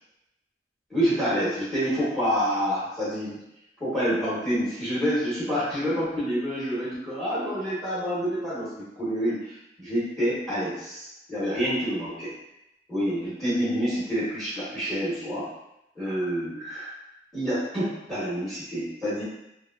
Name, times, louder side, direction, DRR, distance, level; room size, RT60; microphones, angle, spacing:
voice 1, 0.9-3.4 3.8-12.3 12.9-15.5 15.9-16.9 17.3-19.2, equal, ahead, -10 dB, 1.1 m, -28 dB
3.1 x 2.3 x 2.4 m, 0.87 s
head